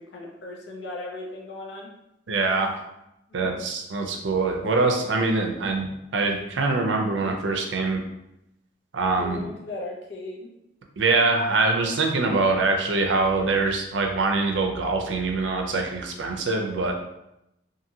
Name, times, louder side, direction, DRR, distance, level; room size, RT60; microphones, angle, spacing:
voice 1, 0.0-1.9 3.3-3.6 9.1-10.5, left 2 dB, 70° left, -2 dB, 0.5 m, -37 dB
voice 2, 2.3-2.7 3.3-5.9 6.1-8.0 8.9-9.4 11.0-16.9, right 3 dB, 80° right, 2 dB, 0.5 m, -24 dB
2.6 x 2.6 x 2.8 m, 0.86 s
head